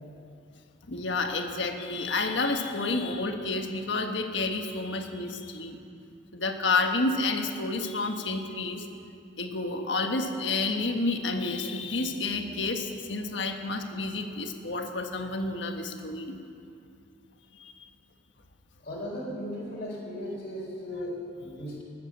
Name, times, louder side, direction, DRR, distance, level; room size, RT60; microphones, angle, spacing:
voice 1, 0.9-5.8 6.3-8.9 9.4-16.4 17.6-17.7, left 3 dB, 70° left, 4 dB, 1.5 m, -30 dB
voice 2, 18.8-21.8, equal, 45° left, -9 dB, 4.0 m, -36 dB
20.0 x 9.4 x 7.3 m, 2.5 s
head